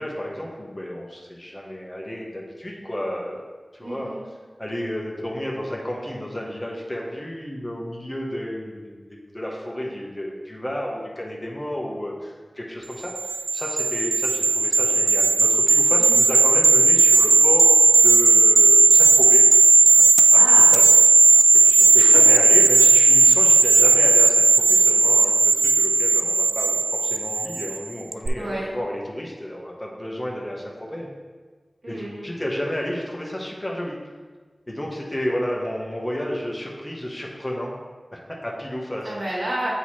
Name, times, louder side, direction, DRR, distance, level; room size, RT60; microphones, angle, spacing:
voice 1, 0.0-3.4 3.7-4.1 4.6-19.4 20.3-20.4 20.7-20.9 21.6-31.1 31.9-34.0 34.7-37.7 38.1-39.1, equal, 25° left, -2 dB, 1.1 m, -31 dB
voice 2, 3.8-4.2 15.9-16.3 20.3-20.7 21.9-22.2 28.4-28.7 31.8-32.3 39.0-39.7, right 1 dB, 85° right, -5 dB, 1.9 m, -31 dB
sound 1, 13.2-27.8 28.1-28.3, right 3 dB, 65° right, 0.3 m, -15 dB
8.0 x 3.1 x 4.3 m, 1.4 s
wide cardioid pair, 55°, 0 cm